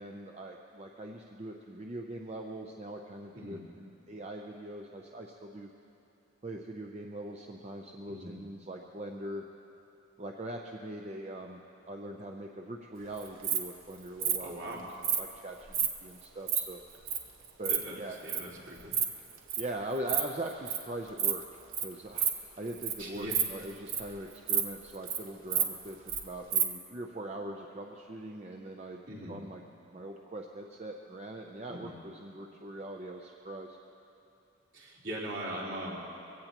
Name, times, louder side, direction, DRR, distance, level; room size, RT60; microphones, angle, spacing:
voice 1, 0.0-5.7 6.4-9.5 10.2-14.9 15.2-16.8 17.6-18.2 19.6-29.6 29.9-33.8, right 1 dB, 30° right, 1 dB, 0.6 m, -42 dB
Insect, 13.2-13.6 14.2-14.4 15.0-15.2 15.7-15.9 16.2-16.6 17.1-17.2 17.4-17.8 18.3-18.4 18.8-19.0 19.3-19.6 20.0-20.2 20.5-20.8 21.2-21.4 21.7-21.8 22.2-22.3 22.7-22.9 23.2-24.1 24.5-24.6 24.9-25.2 25.5-26.2 26.5-26.6, right 8 dB, 75° right, 1.2 m, -29 dB
voice 2, 14.4-14.8 17.7-17.9 18.2-19.0 23.0-23.4 29.1-29.4 31.7-31.9 34.7-36.0, right 1 dB, 60° right, -7 dB, 3.7 m, -40 dB
22.5 x 17.0 x 3.0 m, 2.9 s
head